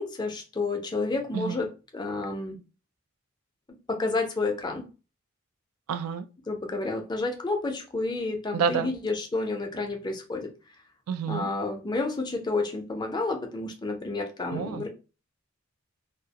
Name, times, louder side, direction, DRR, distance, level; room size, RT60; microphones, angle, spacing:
voice 1, 0.0-1.7 1.9-2.6 3.9-4.8 6.5-10.5 11.3-14.9, left 3 dB, 20° left, 0.4 m, -30 dB
voice 2, 5.9-6.3 8.5-8.9 11.1-11.5 14.5-14.9, right 6 dB, 90° right, 0.3 m, -28 dB
2.3 x 2.0 x 2.7 m
head